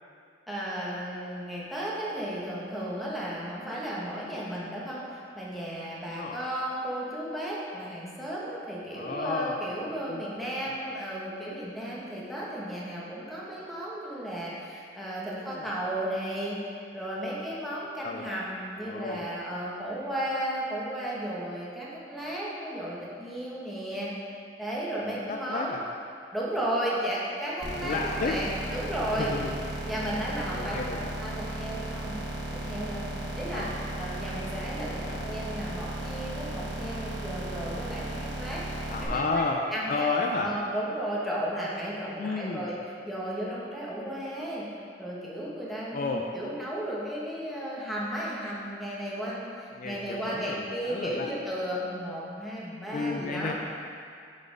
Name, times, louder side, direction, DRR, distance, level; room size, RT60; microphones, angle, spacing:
voice 1, 0.5-16.6 16.9-24.1 24.6-25.9 26.3-29.3 29.8-30.8 31.2-32.2 32.6-33.0 33.4-33.7 33.9-39.4 39.7-42.7 43.0-44.6 45.0-53.5, right 1 dB, ahead, -7 dB, 1.2 m, -34 dB
voice 2, 8.9-10.8 15.4-15.7 18.0-18.3 18.8-19.2 25.3-25.8 27.8-28.3 29.2-29.5 30.5-31.1 33.5-34.1 35.0-35.4 38.9-39.6 39.9-40.5 42.2-42.7 45.9-46.2 49.8-51.3 52.9-53.5, left 3 dB, 50° left, 1 dB, 0.4 m, -32 dB
sound 1, 27.6-39.0, right 1 dB, 80° right, 1.3 m, -35 dB
6.5 x 4.3 x 5.0 m, 2.4 s
head